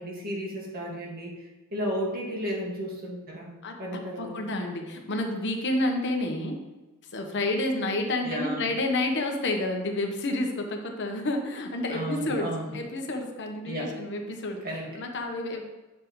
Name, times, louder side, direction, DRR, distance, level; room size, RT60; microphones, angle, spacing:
voice 1, 0.0-3.5 3.8-4.4 8.2-8.6 11.9-12.7 13.7-13.9 14.6-15.0, equal, 45° right, -2 dB, 2.0 m, -33 dB
voice 2, 3.6-6.6 7.1-14.6 14.9-15.6, left 2 dB, 55° left, 3 dB, 1.1 m, -29 dB
9.3 x 7.2 x 3.2 m, 1.1 s
head